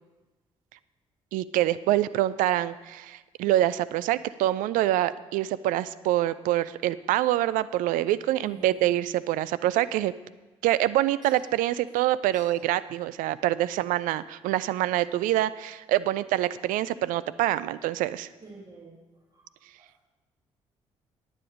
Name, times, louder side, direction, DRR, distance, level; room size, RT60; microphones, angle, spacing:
voice 1, 1.3-10.1 10.6-18.3, right 14 dB, 60° right, 17 dB, 0.4 m, -25 dB
voice 2, 8.4-9.0 11.2-11.3 12.3-12.5 18.4-19.0 19.3-20.1, right 3 dB, 25° right, -2 dB, 1.6 m, -48 dB
9.7 x 8.7 x 5.1 m, 1.2 s
figure-of-eight pair, 45°, 15 cm